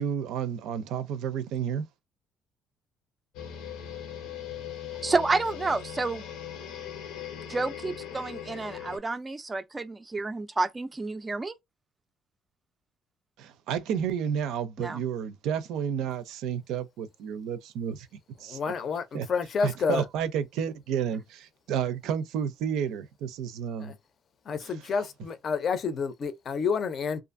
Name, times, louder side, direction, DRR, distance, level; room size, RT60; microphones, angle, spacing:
voice 1, 0.0-1.9 13.4-18.1 18.4-18.6 19.1-19.3 19.6-23.9 24.6-24.7, right 8 dB, 80° right, 0.5 m, -31 dB
sound 1, 3.3-9.0, left 9 dB, 85° left, 0.7 m, -39 dB
voice 2, 5.0-6.2 7.5-11.5 14.8-15.0, right 3 dB, 15° right, 0.4 m, -30 dB
voice 3, 18.4-20.0 23.8-24.0 24.4-27.2, left 5 dB, 40° left, 0.5 m, -29 dB
2.5 x 2.5 x 2.5 m
cardioid pair, 145°, 0 cm